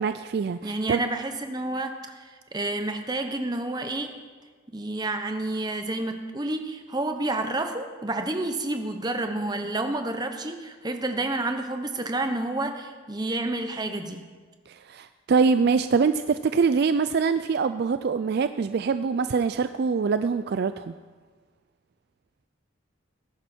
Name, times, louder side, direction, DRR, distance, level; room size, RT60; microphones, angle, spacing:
voice 1, 0.0-1.0 14.7-20.9, right 5 dB, 50° right, 11 dB, 0.3 m, -24 dB
voice 2, 0.6-2.2 2.5-4.2 4.7-14.2, right 2 dB, 20° right, 6 dB, 1.0 m, -29 dB
19.0 x 10.5 x 4.4 m, 1.5 s
head